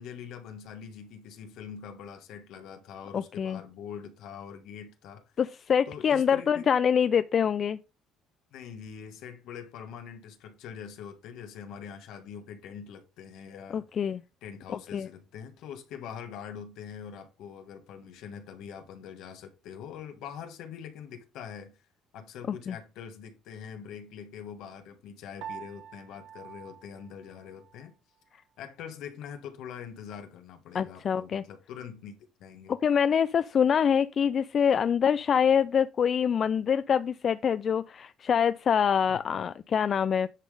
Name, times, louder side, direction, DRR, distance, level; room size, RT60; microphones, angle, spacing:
voice 1, 0.0-5.2 5.9-6.7 8.5-13.8 14.4-21.7 22.1-27.9 28.6-32.7 39.1-39.2, left 7 dB, 75° left, 1.4 m, -43 dB
voice 2, 3.1-3.6 5.4-7.8 13.7-14.2 14.9-15.1 22.7-22.8 30.7-31.4 32.7-40.3, left 7 dB, 50° left, 0.3 m, -25 dB
Piano, 25.4-27.9, right 9 dB, 80° right, 0.9 m, -46 dB
9.9 x 3.7 x 4.9 m
supercardioid pair, 80°, 0 cm